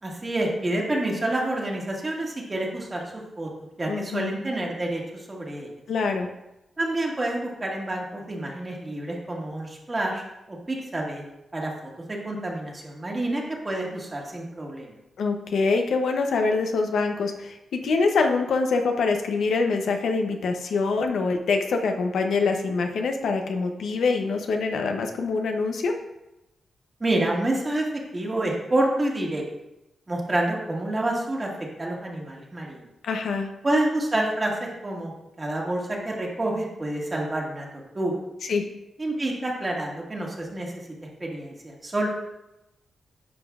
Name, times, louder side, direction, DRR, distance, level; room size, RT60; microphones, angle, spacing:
voice 1, 0.0-3.0 3.4-3.5 3.8-5.7 6.8-11.2 11.5-11.7 12.1-14.9 27.0-27.8 28.1-29.4 30.1-31.5 31.8-32.9 33.6-35.1 35.4-37.7 37.9-38.2 39.0-40.7 41.2-42.1, right 1 dB, 30° right, -1 dB, 1.7 m, -28 dB
voice 2, 3.9-4.3 5.9-6.3 15.2-25.9 33.0-33.5 38.4-38.6, left 4 dB, 80° left, 4 dB, 0.7 m, -25 dB
9.9 x 5.1 x 2.4 m, 0.91 s
cardioid pair, 75°, 0 cm